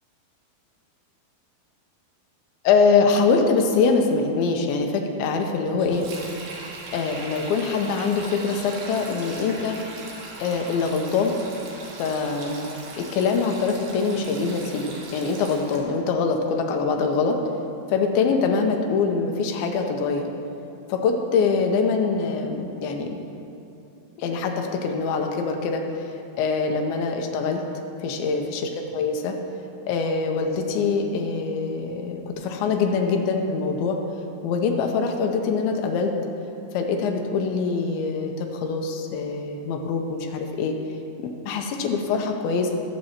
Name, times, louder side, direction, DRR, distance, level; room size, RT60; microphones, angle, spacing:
voice 1, 2.6-6.1 6.9-9.8 10.4-11.4 12.0-12.7 13.0-17.4 17.9-20.3 20.9-23.2 24.2-26.1 26.4-27.6 28.0-29.4 29.9-34.0 34.4-36.1 36.7-40.7 41.5-42.7, left 4 dB, 85° left, 3 dB, 2.5 m, -24 dB
Sink (filling or washing), 5.8-15.8, right 3 dB, 75° right, 2.9 m, -39 dB
15.5 x 6.7 x 2.9 m, 2.7 s
omnidirectional pair, 4.4 m